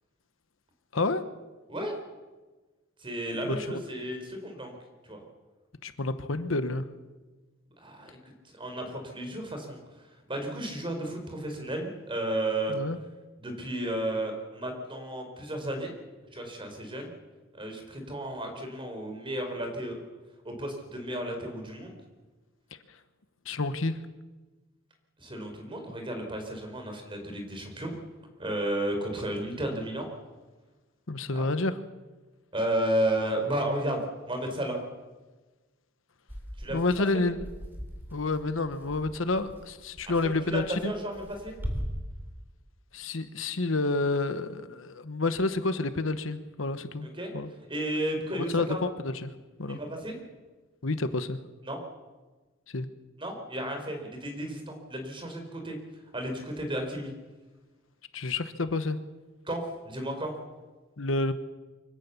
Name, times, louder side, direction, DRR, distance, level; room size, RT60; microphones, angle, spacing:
voice 1, 0.9-1.2 3.4-3.8 5.8-6.8 12.7-13.0 23.4-24.0 31.1-31.8 36.7-37.4 38.1-40.9 42.9-47.1 47.3-47.5 48.3-49.3 49.6-49.8 50.8-51.4 52.7-52.9 58.1-59.0 61.0-61.3, left 2 dB, 75° left, 11 dB, 1.1 m, -29 dB
voice 2, 3.0-4.7 5.0-5.2 7.8-8.2 8.5-9.8 10.3-12.7 13.4-15.9 16.3-17.1 17.5-20.0 20.4-22.0 25.2-27.9 28.4-30.1 31.3-31.4 32.5-34.0 34.3-34.8 36.6-36.8 37.1-37.2 40.1-41.5 47.2-47.3 47.7-48.8 49.7-50.2 51.6-51.8 53.2-55.8 56.1-57.1 59.5-60.3, right 1 dB, 25° right, 4 dB, 4.4 m, -33 dB
sound 1, 36.3-41.8, equal, 10° right, 4.2 m, -40 dB
24.5 x 16.5 x 7.1 m, 1.2 s
head